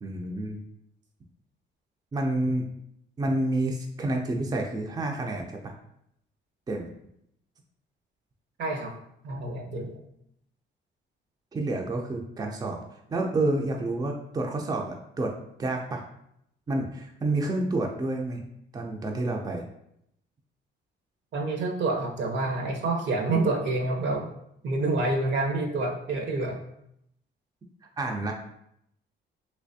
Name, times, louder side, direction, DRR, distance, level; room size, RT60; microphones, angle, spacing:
voice 1, 0.0-0.6 2.1-2.7 3.2-5.7 6.7-6.9 11.5-12.8 13.1-16.0 16.7-18.4 18.7-19.6 28.0-28.3, right 2 dB, 20° right, 1 dB, 0.4 m, -29 dB
voice 2, 8.6-8.9 9.2-10.0 21.3-24.3 24.6-26.6, right 2 dB, 65° right, 2 dB, 0.7 m, -27 dB
3.3 x 2.9 x 2.7 m, 0.75 s
cardioid pair, 90°, 20 cm